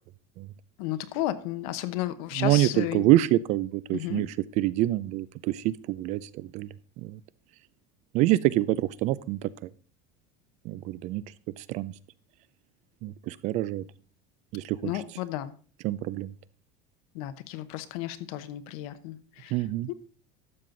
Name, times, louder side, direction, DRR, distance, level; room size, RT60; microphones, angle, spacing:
voice 1, 0.8-3.0 3.9-4.2 14.8-15.5 17.1-19.6 19.9-20.0, left 14 dB, 70° left, 13 dB, 1.0 m, -33 dB
voice 2, 2.4-6.7 7.0-7.2 8.1-9.5 10.6-11.2 11.6-11.9 13.0-13.8 14.5-14.9 15.8-16.3 19.5-19.9, right 15 dB, 40° right, 19 dB, 0.4 m, -26 dB
12.5 x 7.5 x 3.8 m, 0.41 s
cardioid pair, 180°, 19 cm